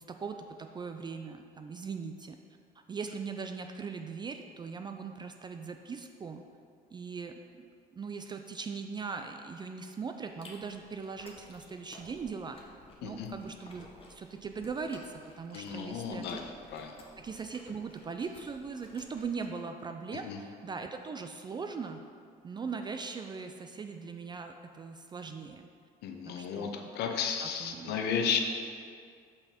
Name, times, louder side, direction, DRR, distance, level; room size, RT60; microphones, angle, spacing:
voice 1, 0.0-2.4 2.9-6.4 6.9-12.6 13.0-16.3 17.2-22.1 22.4-25.6 26.3-26.9 27.4-28.0, right 5 dB, 25° right, 6 dB, 0.3 m, -40 dB
Chewing mastication, 10.2-19.5, left 2 dB, 35° left, 1.1 m, -55 dB
voice 2, 15.5-16.4 16.7-17.0 20.2-20.4 26.0-28.4, left 6 dB, 80° left, 4 dB, 0.7 m, -33 dB
5.8 x 5.5 x 4.3 m, 2.2 s
cardioid pair, 110°, 17 cm